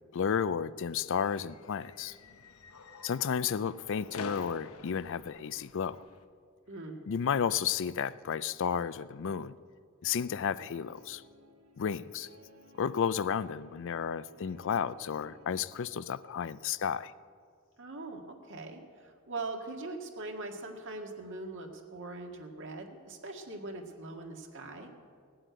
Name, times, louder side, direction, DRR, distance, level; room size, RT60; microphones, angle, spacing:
voice 1, 0.1-2.2 3.0-6.0 7.1-9.5 10.0-11.2 11.8-12.3 12.8-17.1, left 7 dB, 60° left, 0.4 m, -32 dB
sound 1, 0.9-6.2, left 4 dB, 85° left, 0.9 m, -48 dB
voice 2, 6.7-7.0 17.8-24.9, right 2 dB, 60° right, 1.8 m, -41 dB
Guitar, 10.0-16.6, equal, 75° right, 1.4 m, -59 dB
17.5 x 7.7 x 9.2 m
head